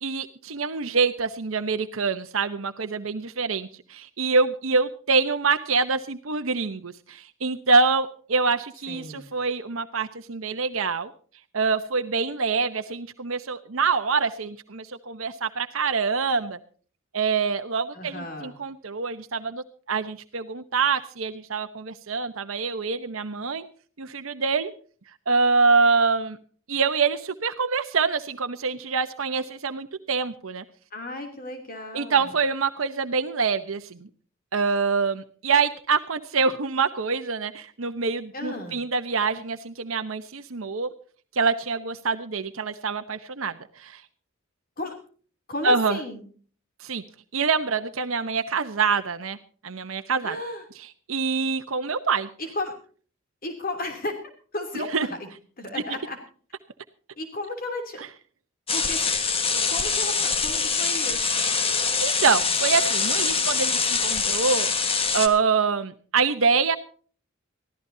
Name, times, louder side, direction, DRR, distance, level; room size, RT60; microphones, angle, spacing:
voice 1, 0.0-11.1 11.5-16.6 17.1-23.6 24.0-24.7 25.3-26.4 26.7-30.6 31.9-34.1 34.5-40.9 41.3-44.0 45.6-46.0 46.8-47.0 47.3-49.4 49.6-50.4 51.1-52.3 54.7-55.1 58.0-58.1 62.0-66.8, right 4 dB, 80° right, 8 dB, 0.9 m, -25 dB
voice 2, 8.9-9.3 17.9-18.6 30.9-32.3 38.3-38.8 44.8-45.0 45.5-46.2 50.2-50.6 52.4-52.7 53.4-54.2 54.5-55.3 55.6-56.2 57.1-58.0 58.7-59.1 59.5-61.6, left 1 dB, 45° left, 5 dB, 3.0 m, -34 dB
sound 1, 58.7-65.3, left 5 dB, 30° left, 1.5 m, -24 dB
23.5 x 15.0 x 2.7 m, 0.43 s
head